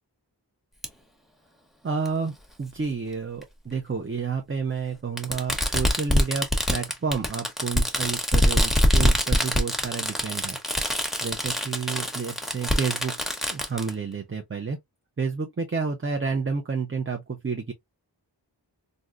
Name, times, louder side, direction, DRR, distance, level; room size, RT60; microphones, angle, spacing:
Fireworks, 0.8-0.9 2.1-2.2 3.4-3.5 5.2-13.9, left 1 dB, ahead, 1.0 m, -24 dB
voice 1, 1.8-10.6 10.9-14.8 15.2-17.7, right 5 dB, 30° right, 0.6 m, -30 dB
3.6 x 2.6 x 2.4 m
wide cardioid pair, 45°, 43 cm